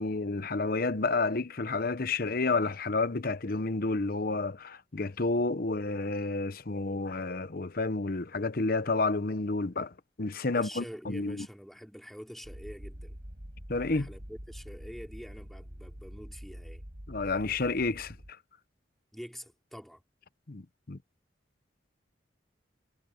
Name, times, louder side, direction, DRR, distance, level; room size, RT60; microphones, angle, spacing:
voice 1, 0.0-11.5 13.7-14.1 17.1-18.2 20.5-21.0, left 3 dB, 50° left, 0.9 m, -30 dB
voice 2, 10.5-13.2 13.8-16.8 19.1-20.0, equal, ahead, 3.8 m, -46 dB
sound 1, 12.4-18.3, equal, 50° right, 4.8 m, -46 dB
head